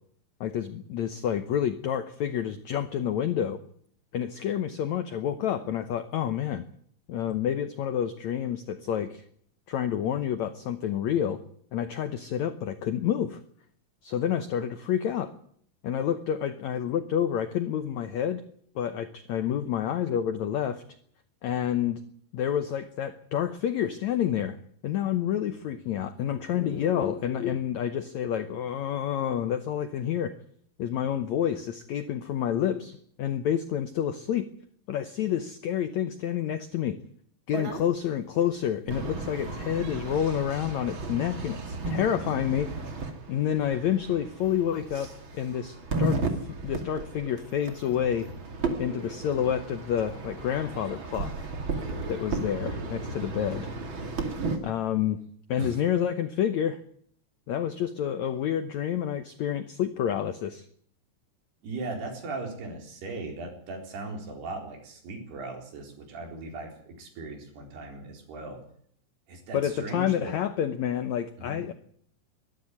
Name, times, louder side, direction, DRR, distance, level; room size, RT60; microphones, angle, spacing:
voice 1, 0.4-3.6 4.1-6.6 7.1-9.2 9.7-11.4 11.7-13.4 14.0-15.3 15.8-18.4 18.7-20.8 21.4-22.0 22.3-24.6 24.8-30.3 30.8-34.5 34.9-37.0 37.5-42.7 43.3-46.3 46.6-48.3 48.8-51.5 52.1-53.7 54.6-55.2 55.5-56.8 57.5-60.6 69.5-71.7, left 9 dB, 85° left, 10 dB, 1.6 m, -29 dB
sound 1, 37.5-37.9 38.9-54.6, right 3 dB, 35° right, 2.5 m, -34 dB
voice 2, 61.6-68.6 69.3-70.3 71.4-71.6, right 3 dB, 80° right, 3 dB, 6.2 m, -38 dB
22.5 x 12.0 x 9.6 m, 0.63 s
omnidirectional pair, 4.6 m